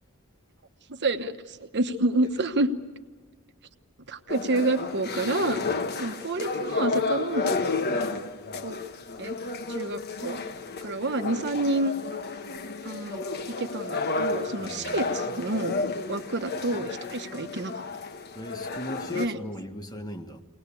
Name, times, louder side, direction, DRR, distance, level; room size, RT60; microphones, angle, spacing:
voice 1, 0.9-2.7 4.1-5.6 6.0-7.5 7.9-8.2 8.6-8.8 9.2-9.4 9.7-10.4 10.8-11.9 12.8-15.7 16.1-17.8 19.1-19.4, right 2 dB, 55° right, 1.1 m, -28 dB
sound 1, 4.3-19.3, left 3 dB, 50° left, 1.0 m, -32 dB
voice 2, 14.6-15.0 18.3-20.4, equal, 20° left, 1.4 m, -38 dB
24.0 x 19.0 x 8.4 m
head